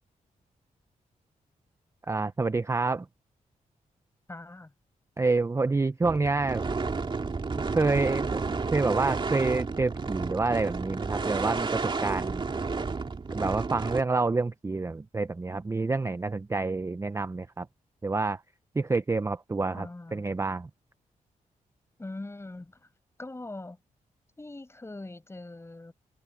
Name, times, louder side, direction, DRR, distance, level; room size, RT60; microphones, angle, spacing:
voice 1, 2.0-3.1 5.2-6.7 7.5-12.4 13.3-17.7 18.0-18.4 18.7-20.7, right 3 dB, 20° right, 0.6 m, -28 dB
voice 2, 4.3-4.7 19.7-20.2 22.0-22.9 23.2-23.8 24.4-25.9, left 2 dB, 20° left, 6.4 m, -41 dB
sound 1, 6.0-14.0, right 4 dB, 35° right, 2.8 m, -31 dB
cardioid pair, 105°, 14 cm